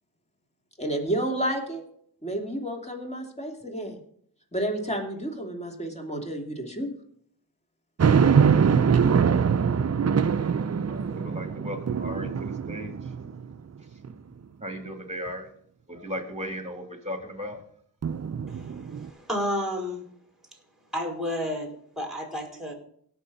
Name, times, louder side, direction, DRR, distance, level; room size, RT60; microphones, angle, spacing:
voice 1, 0.8-1.8 2.2-4.0 4.5-6.9, right 1 dB, 15° left, 2 dB, 2.9 m, -30 dB
sound 1, 8.0-13.5 14.0-14.1 18.0-19.1, right 6 dB, 40° right, 0.6 m, -23 dB
voice 2, 10.9-12.9 14.6-15.5 15.9-17.6, equal, 15° right, 4 dB, 3.1 m, -36 dB
voice 3, 18.5-20.1 20.9-22.7, equal, ahead, 2 dB, 5.2 m, -31 dB
17.5 x 6.6 x 4.2 m, 0.63 s
cardioid pair, 45°, 41 cm